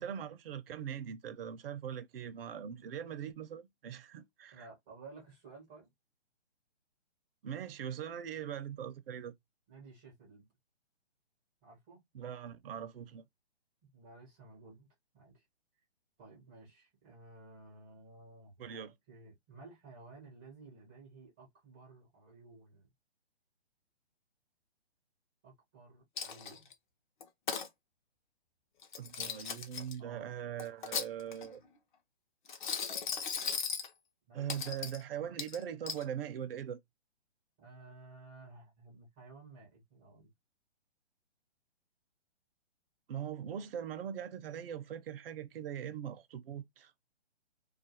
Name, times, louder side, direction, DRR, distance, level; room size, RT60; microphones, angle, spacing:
voice 1, 0.0-4.7 7.4-9.3 12.1-13.2 18.6-18.9 29.0-31.6 34.3-36.8 43.1-46.9, right 9 dB, 55° right, 0.5 m, -41 dB
voice 2, 4.5-5.9 9.7-10.5 11.6-12.0 13.9-14.9 15.1-15.5 16.2-18.8 19.1-22.9 25.4-26.7 30.0-30.4 34.3-34.5 37.6-40.3, right 3 dB, 10° right, 0.4 m, -55 dB
Coin (dropping), 26.2-26.7 27.2-27.7 28.8-29.9 30.6-31.5 32.5-33.9 34.5-35.0 35.4-36.0, left 6 dB, 45° left, 0.7 m, -37 dB
2.4 x 2.3 x 2.7 m
hypercardioid pair, 145°, 33 cm